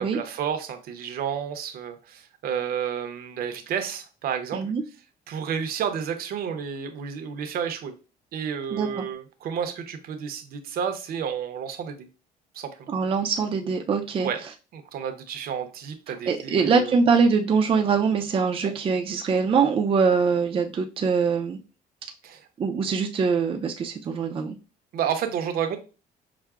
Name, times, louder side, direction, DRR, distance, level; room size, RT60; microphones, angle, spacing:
voice 1, 0.0-4.7 5.3-7.9 8.3-12.1 12.5-12.9 14.2-14.4 14.7-16.9 18.6-18.7 22.2-22.5 24.9-25.8, right 8 dB, 65° right, 7 dB, 0.7 m, -31 dB
voice 2, 8.7-9.1 12.9-14.3 16.3-21.6 22.6-24.6, right 5 dB, 35° right, 2 dB, 0.4 m, -23 dB
5.7 x 2.1 x 2.4 m, 0.31 s
cardioid pair, 110°, 17 cm